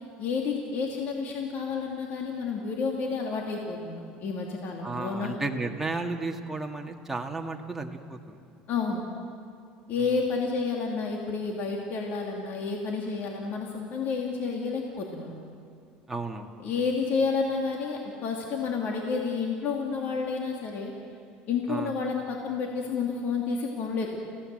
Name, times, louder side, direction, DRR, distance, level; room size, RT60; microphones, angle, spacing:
voice 1, 0.2-5.3 8.7-9.0 9.9-15.4 16.6-20.9 21.5-24.2, left 4 dB, 55° left, 0 dB, 2.8 m, -30 dB
voice 2, 4.8-8.4 16.1-16.5 21.7-21.9, right 3 dB, 5° right, 1 dB, 2.0 m, -33 dB
30.0 x 16.5 x 7.8 m, 2.3 s
cardioid pair, 120°, 4 cm